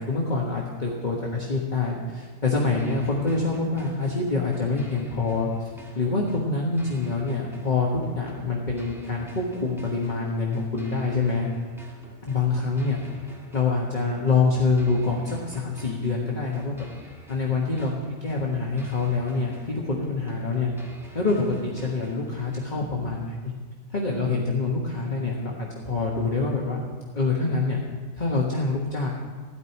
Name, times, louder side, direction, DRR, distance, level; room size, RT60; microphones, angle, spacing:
voice 1, 0.0-5.5 5.9-11.5 12.2-13.0 13.5-16.9 17.3-17.9 18.2-20.7 21.1-23.4 23.9-26.8 27.1-27.8 28.1-29.1, left 3 dB, 35° left, -3 dB, 1.5 m, -26 dB
sound 1, 2.8-22.8, right 2 dB, ahead, 1.8 m, -48 dB
16.0 x 5.3 x 9.6 m, 1.5 s
omnidirectional pair, 1.5 m